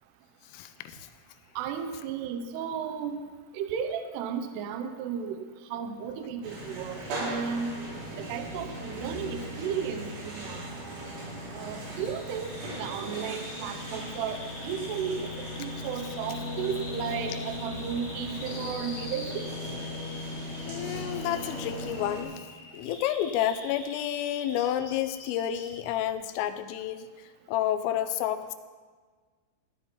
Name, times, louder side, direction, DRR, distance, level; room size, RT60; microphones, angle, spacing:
voice 1, 0.5-1.1 20.7-22.4 22.7-28.6, left 11 dB, 85° left, 10 dB, 3.1 m, -30 dB
voice 2, 1.6-3.2 3.5-5.4 5.7-7.7 8.2-10.7 11.5-12.5 12.8-19.5, right 7 dB, 90° right, 7 dB, 2.3 m, -34 dB
sound 1, 6.4-22.2, equal, 65° right, 5.5 m, -38 dB
Bird vocalization bird call bird song, 11.8-25.8, left 2 dB, 60° left, 4.7 m, -45 dB
14.5 x 10.0 x 4.4 m, 1.5 s
omnidirectional pair, 5.9 m